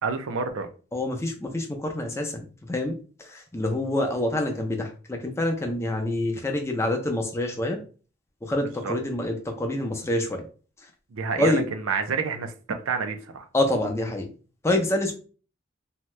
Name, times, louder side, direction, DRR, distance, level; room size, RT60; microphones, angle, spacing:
voice 1, 0.0-0.7 8.8-8.9 11.1-13.4, right 5 dB, 85° right, 0.5 m, -28 dB
voice 2, 0.9-7.8 8.4-10.5 10.8-10.9 11.4-11.7 13.5-14.3 14.6-15.1, left 1 dB, 15° left, 0.5 m, -27 dB
2.8 x 2.2 x 3.2 m
head